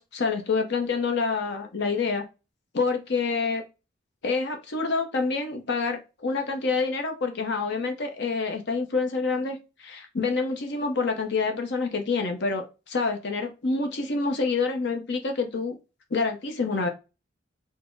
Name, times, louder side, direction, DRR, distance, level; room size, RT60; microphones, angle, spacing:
voice 1, 0.0-2.2 2.7-3.6 4.2-15.8 16.1-16.9, left 4 dB, 55° left, 0.6 m, -27 dB
4.2 x 2.0 x 4.4 m
head